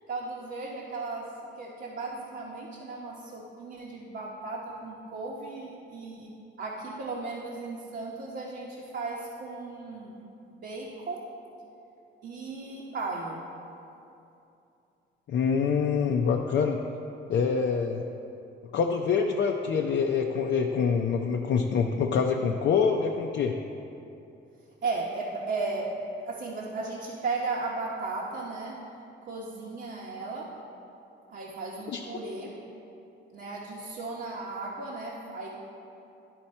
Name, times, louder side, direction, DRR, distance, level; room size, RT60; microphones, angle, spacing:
voice 1, 0.1-1.3 1.6-10.2 10.6-11.2 12.2-13.4 24.8-26.0 26.3-28.8 29.2-30.5 31.3-32.5 33.3-35.5, right 3 dB, 60° right, -4 dB, 1.0 m, -35 dB
voice 2, 15.3-16.8 17.3-18.0 18.7-23.6 31.9-32.0, left 6 dB, 65° left, 2 dB, 0.5 m, -25 dB
12.0 x 4.3 x 4.3 m, 2.8 s
cardioid pair, 90°, 20 cm